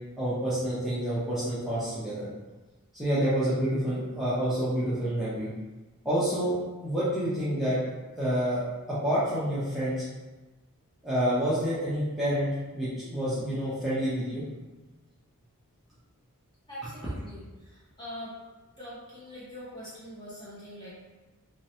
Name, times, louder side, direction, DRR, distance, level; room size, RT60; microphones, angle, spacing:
voice 1, 0.2-2.3 2.9-5.5 6.0-7.8 8.2-8.6 9.0-10.0 11.0-12.5 12.7-14.4, equal, ahead, -13 dB, 0.7 m, -28 dB
voice 2, 16.7-18.4 18.8-20.9, equal, 20° left, -9 dB, 1.2 m, -43 dB
3.1 x 2.9 x 2.8 m, 1.2 s
head